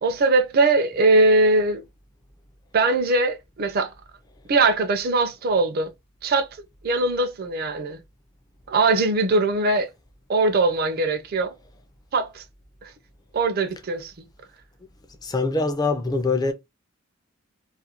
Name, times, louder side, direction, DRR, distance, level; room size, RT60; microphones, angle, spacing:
voice 1, 0.0-1.8 2.7-3.9 4.5-5.9 6.2-6.5 6.8-8.0 8.7-9.9 10.3-11.5 12.1-12.4 12.8-12.9 13.3-14.3, right 3 dB, 50° right, 0.4 m, -21 dB
voice 2, 15.2-16.5, left 3 dB, 20° left, 0.4 m, -23 dB
2.4 x 2.2 x 2.8 m
head